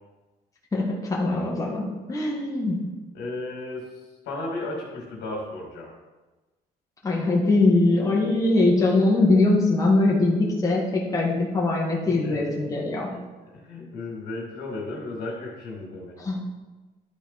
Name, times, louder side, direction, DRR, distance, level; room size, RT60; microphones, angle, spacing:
voice 1, 0.7-2.8 7.0-13.1 16.2-16.4, left 2 dB, 20° left, -3 dB, 1.6 m, -22 dB
voice 2, 3.1-3.9 4.3-5.9 12.1-12.6 13.1-13.2 13.5-16.2, left 2 dB, 80° left, -1 dB, 2.4 m, -34 dB
11.0 x 4.1 x 4.2 m, 1.2 s
cardioid pair, 110°, 17 cm